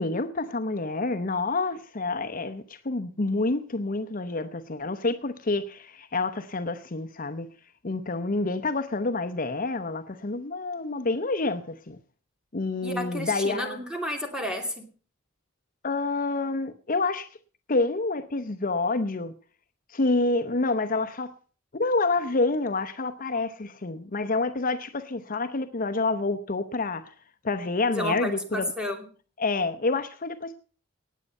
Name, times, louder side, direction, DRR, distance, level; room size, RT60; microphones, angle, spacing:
voice 1, 0.0-7.5 7.8-12.0 12.5-13.8 15.8-17.3 17.7-19.3 19.9-21.3 21.7-27.1 27.4-28.7 29.4-30.5, left 3 dB, 45° left, 0.8 m, -28 dB
voice 2, 12.8-14.9 27.9-29.0, left 1 dB, 5° right, 2.7 m, -31 dB
18.5 x 8.2 x 5.4 m
head